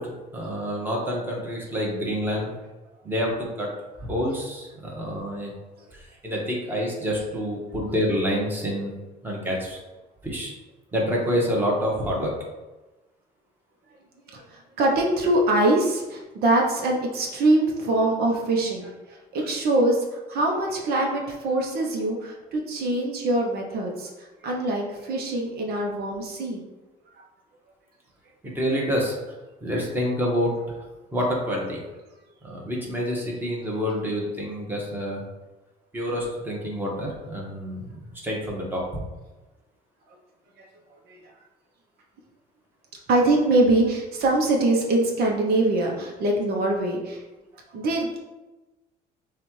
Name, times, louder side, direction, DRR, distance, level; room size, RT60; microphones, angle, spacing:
voice 1, 0.0-2.5 3.0-3.7 4.0-5.5 5.9-8.9 9.2-9.8 10.2-10.5 10.9-12.3 28.4-29.1 29.6-30.5 31.1-31.8 32.4-35.2 35.9-39.0, equal, 10° right, -3 dB, 1.3 m, -27 dB
voice 2, 14.3-26.6 40.6-40.7 41.1-41.2 43.1-47.2 47.7-48.2, right 2 dB, 65° right, -1 dB, 0.9 m, -23 dB
6.6 x 2.5 x 3.2 m, 1.1 s
cardioid pair, 110°, 17 cm